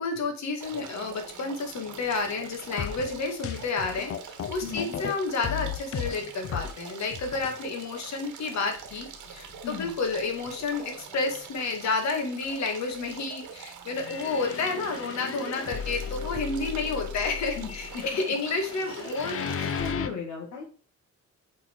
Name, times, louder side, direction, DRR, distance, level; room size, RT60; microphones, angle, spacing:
voice 1, 0.0-19.4, left 3 dB, 65° left, 3 dB, 2.1 m, -30 dB
sound 1, 0.6-19.9, right 7 dB, 80° right, 1.5 m, -44 dB
sound 2, 2.8-5.1 5.4-6.8 7.1-7.6 8.1-8.2 8.9-9.0 9.5-9.6 14.0-20.1, left 7 dB, 50° left, 0.8 m, -35 dB
voice 2, 4.6-5.0 9.6-9.9 17.6-18.0 18.9-19.1 19.4-20.6, left 6 dB, 80° left, -3 dB, 2.0 m, -37 dB
8.1 x 4.2 x 4.5 m, 0.40 s
cardioid pair, 90°, 30 cm